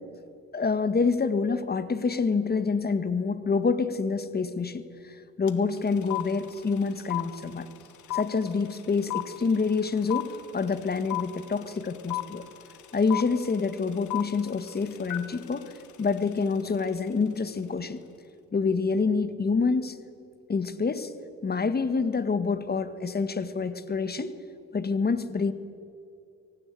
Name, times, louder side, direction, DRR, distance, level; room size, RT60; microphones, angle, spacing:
voice 1, 0.5-4.8 5.4-7.7 8.1-12.4 12.9-15.7 16.0-18.0 18.5-20.0 20.5-21.1 21.4-24.3 24.7-25.5, left 4 dB, 30° left, 12 dB, 1.6 m, -27 dB
sound 1, 5.5-5.6 5.8-16.9, left 16 dB, 75° left, 1.9 m, -35 dB
24.0 x 17.5 x 9.1 m, 2.6 s
cardioid pair, 90°, 30 cm